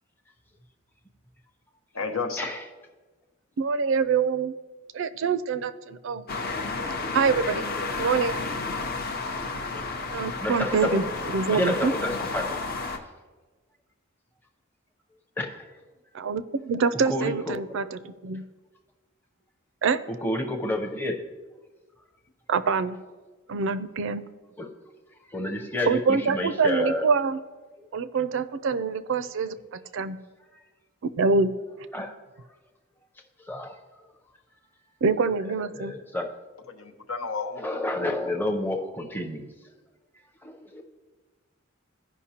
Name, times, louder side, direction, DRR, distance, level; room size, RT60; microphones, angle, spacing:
voice 1, 1.9-2.4 36.7-37.6, left 4 dB, 85° left, 4 dB, 1.0 m, -31 dB
voice 2, 3.6-4.5 4.9-6.2 7.1-7.7 8.0-8.4 10.1-11.0 11.3-11.9 16.1-18.4 19.8-20.0 22.5-23.0 23.5-24.2 25.9-27.4 27.9-30.2 31.0-31.5 35.0-35.9, right 5 dB, 60° right, 14 dB, 0.4 m, -25 dB
sound 1, 6.3-13.0, left 3 dB, 45° left, 0.7 m, -31 dB
voice 3, 10.4-11.1 11.5-12.6 15.4-15.7 17.0-17.7 20.1-21.3 24.6-24.8 25.3-27.1 27.8-27.9 31.9-32.2 33.4-33.8 35.4-36.3 37.6-39.5 40.4-40.8, left 1 dB, 10° left, 3 dB, 0.7 m, -30 dB
15.5 x 5.4 x 2.8 m, 1.3 s
head